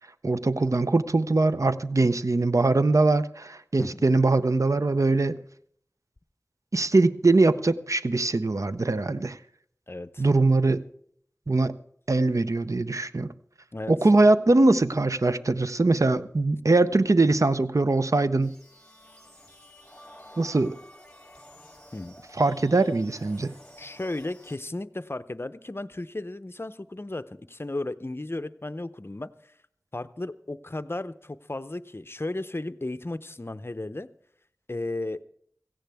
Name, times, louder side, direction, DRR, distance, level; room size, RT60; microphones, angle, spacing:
voice 1, 0.2-5.4 6.7-9.4 10.2-10.8 11.5-11.7 12.1-13.3 13.9-18.6 20.4-20.8 22.4-23.5, right 2 dB, 70° right, 0.6 m, -22 dB
voice 2, 9.9-10.3 13.7-13.9 21.9-22.1 23.8-29.3 29.9-34.1 34.7-35.2, left 2 dB, 45° left, 0.6 m, -34 dB
sound 1, 18.4-24.6, equal, 15° left, 3.0 m, -51 dB
17.0 x 15.5 x 3.5 m
wide cardioid pair, 40°, 6 cm